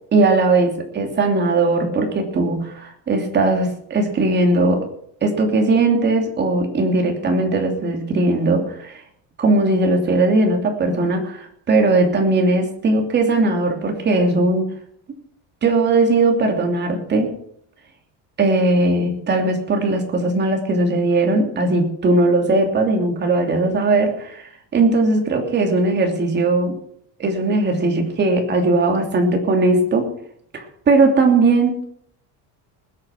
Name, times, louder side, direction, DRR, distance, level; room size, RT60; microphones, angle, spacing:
voice 1, 0.1-4.9 5.2-9.0 9.4-14.7 15.6-17.3 18.4-26.8 27.2-30.1 30.5-31.8, right 2 dB, 25° right, 3 dB, 3.0 m, -18 dB
20.0 x 8.5 x 6.0 m, 0.67 s
cardioid pair, 165°, 38 cm